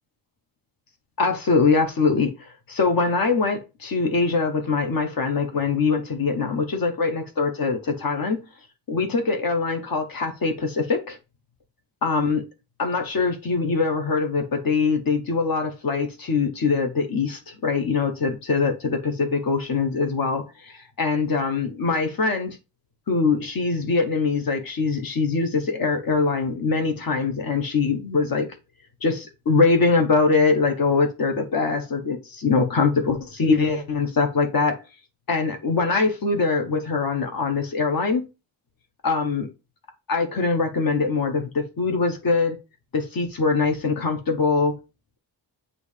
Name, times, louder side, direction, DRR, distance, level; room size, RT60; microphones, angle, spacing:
voice 1, 1.2-8.4 8.9-11.2 12.0-12.4 12.8-22.6 23.1-28.5 29.0-34.8 35.3-38.3 39.0-39.5 40.1-42.6 42.9-44.8, left 4 dB, 50° left, 1.2 m, -23 dB
7.7 x 2.8 x 4.9 m
wide cardioid pair, 175°, 45 cm